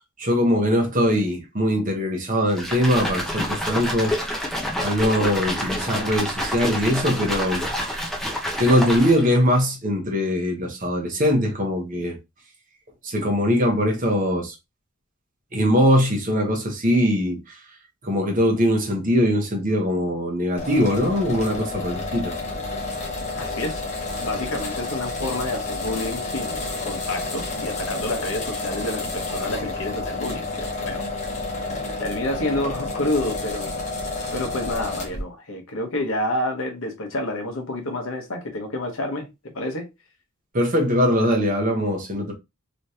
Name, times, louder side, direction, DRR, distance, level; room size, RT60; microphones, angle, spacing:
voice 1, 0.2-4.1 4.8-7.6 7.9-8.0 8.6-12.2 13.0-14.5 15.5-17.6 18.0-22.3 40.5-42.3, equal, 40° right, 1.1 m, -21 dB
sound 1, 2.5-9.4, equal, ahead, 0.8 m, -28 dB
sound 2, 20.6-35.2, left 3 dB, 35° left, 1.0 m, -30 dB
voice 2, 23.3-23.9 24.2-31.0 32.0-33.7 34.3-39.3 39.5-39.9, left 1 dB, 70° left, 1.0 m, -29 dB
3.2 x 3.1 x 2.8 m
head